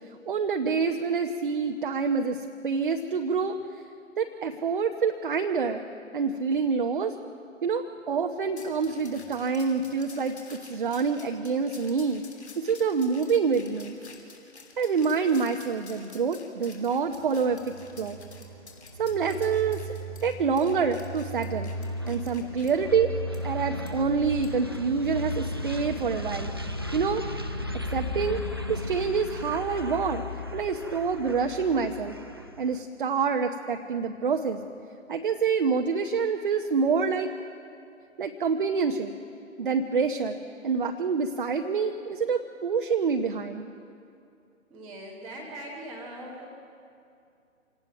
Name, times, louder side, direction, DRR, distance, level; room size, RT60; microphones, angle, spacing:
voice 1, 0.3-3.6 4.2-5.8 6.1-7.2 7.6-10.4 10.7-12.2 12.6-14.0 14.8-18.2 19.0-19.8 20.2-21.7 22.1-23.1 23.4-26.5 26.9-27.2 27.9-28.4 28.7-32.1 32.6-34.6 35.1-37.3 38.2-39.1 39.6-40.4 40.6-43.7, right 5 dB, 40° right, 5 dB, 0.8 m, -27 dB
sound 1, 8.6-22.7 23.3-23.4 23.9-24.0 24.4-24.6, left 4 dB, 55° left, 3.3 m, -50 dB
sound 2, 17.1-32.8, left 1 dB, 20° right, 0.4 m, -35 dB
voice 2, 44.7-46.4, right 1 dB, ahead, -8 dB, 0.8 m, -40 dB
26.5 x 17.5 x 5.9 m, 2.5 s
figure-of-eight pair, 140°, 39 cm